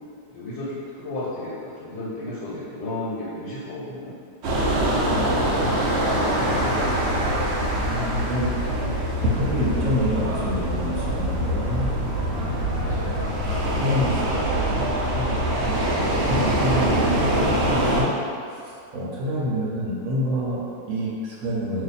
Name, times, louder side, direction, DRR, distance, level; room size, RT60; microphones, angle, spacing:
voice 1, 0.3-4.1 8.4-8.6 12.7-13.2 15.9-16.3 19.2-19.4, left 2 dB, 85° left, -8 dB, 1.3 m, -34 dB
sound 1, 4.4-18.0, right 1 dB, 80° right, 0.6 m, -23 dB
voice 2, 6.4-6.9 7.7-8.5 9.2-11.9 12.3-12.8 13.7-15.8 16.3-21.8, equal, 60° right, -5 dB, 0.9 m, -28 dB
2.6 x 2.5 x 4.0 m, 2.3 s
omnidirectional pair, 1.8 m